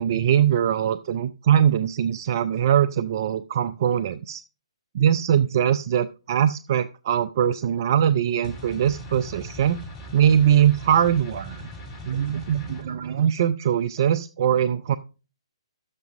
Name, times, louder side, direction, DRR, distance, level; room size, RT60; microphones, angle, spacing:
voice 1, 0.0-4.4 4.9-9.8 10.1-11.7 12.0-15.0, right 9 dB, 45° right, 12 dB, 0.4 m, -22 dB
sound 1, 8.4-12.8, equal, 20° left, 3.1 m, -39 dB
11.5 x 7.4 x 3.6 m, 0.33 s
figure-of-eight pair, 130°, 3 cm